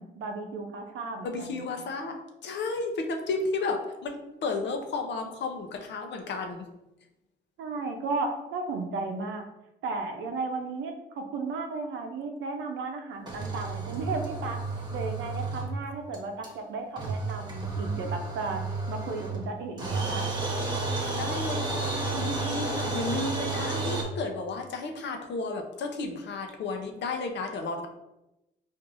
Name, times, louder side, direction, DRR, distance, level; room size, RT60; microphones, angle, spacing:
voice 1, 0.0-1.6 7.6-9.4 9.8-14.6 14.9-20.3, right 3 dB, 80° right, 4 dB, 0.6 m, -34 dB
voice 2, 1.2-6.7 21.1-27.9, left 3 dB, 60° left, 4 dB, 0.6 m, -33 dB
sound 1, 13.3-15.9 16.1-16.2 16.4-16.5 17.0-19.5 19.8-24.0, right 3 dB, 20° right, 0.9 m, -31 dB
4.6 x 2.6 x 2.5 m, 0.94 s
cardioid pair, 90°, 20 cm